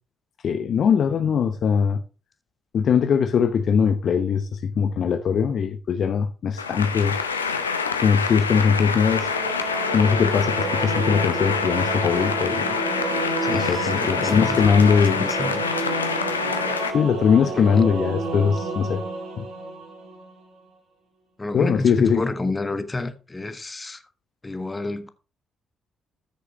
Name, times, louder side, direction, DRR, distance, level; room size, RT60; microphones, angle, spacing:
voice 1, 0.4-2.0 2.7-7.2 8.0-9.3 9.9-12.8 13.5-15.2 16.9-19.0 19.4-19.5 21.5-22.2, left 6 dB, 55° left, 0.8 m, -21 dB
sound 1, 6.6-16.9, left 5 dB, 90° left, 0.7 m, -26 dB
Singing / Musical instrument, 9.1-20.4, right 3 dB, 70° right, 3.8 m, -30 dB
voice 2, 13.4-16.1 17.5-17.8 21.4-24.0 24.4-25.1, left 2 dB, 25° left, 1.4 m, -30 dB
14.0 x 6.6 x 3.1 m
figure-of-eight pair, 40°, 0 cm